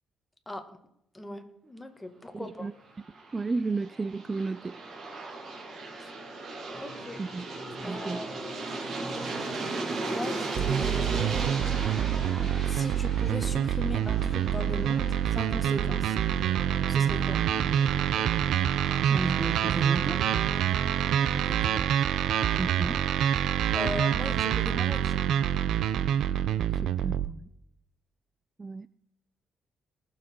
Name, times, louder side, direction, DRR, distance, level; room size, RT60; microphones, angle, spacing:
voice 1, 1.1-2.7 6.0-6.1 6.8-7.2 7.8-8.3 10.0-11.5 12.4-16.2 16.9-17.4 21.4-21.8 23.7-25.2, left 1 dB, 10° left, 1.9 m, -39 dB
voice 2, 2.3-2.7 3.3-4.8 7.2-7.5 7.8-8.2 19.0-20.3 22.6-23.1 26.8-27.5 28.6-28.9, right 3 dB, 25° right, 0.3 m, -33 dB
Aircraft, 2.9-15.8, right 3 dB, 60° right, 3.2 m, -36 dB
sound 1, 6.7-21.4, equal, 45° left, 2.6 m, -46 dB
sound 2, 10.5-27.3, right 9 dB, 75° right, 0.6 m, -26 dB
19.5 x 7.4 x 4.6 m
cardioid pair, 90°, 0 cm